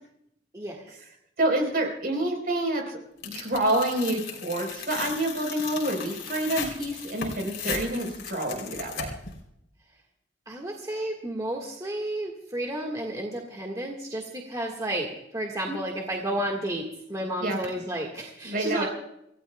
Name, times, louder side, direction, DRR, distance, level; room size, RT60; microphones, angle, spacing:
voice 1, 0.5-1.0 10.4-18.9, right 1 dB, 20° right, 0 dB, 1.6 m, -32 dB
voice 2, 1.4-9.1 15.7-15.8 17.4-17.6 18.4-18.9, right 1 dB, 55° right, 3 dB, 4.1 m, -28 dB
Tearing, 3.2-9.4, left 6 dB, 75° left, 3.3 m, -36 dB
28.5 x 16.0 x 2.3 m, 0.80 s
head